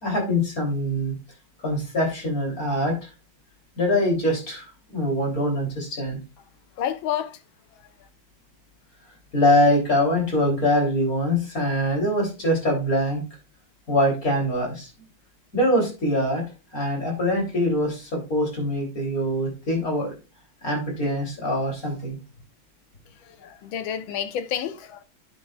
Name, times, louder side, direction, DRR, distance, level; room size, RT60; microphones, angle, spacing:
voice 1, 0.0-1.1 1.6-3.1 3.8-6.2 9.3-13.2 13.9-14.9 15.5-16.4 16.7-20.2 20.6-22.2, left 1 dB, 45° left, 3.8 m, -23 dB
voice 2, 6.8-7.4 23.3-25.0, left 9 dB, 80° left, 1.7 m, -29 dB
9.7 x 7.4 x 2.4 m
omnidirectional pair, 2.2 m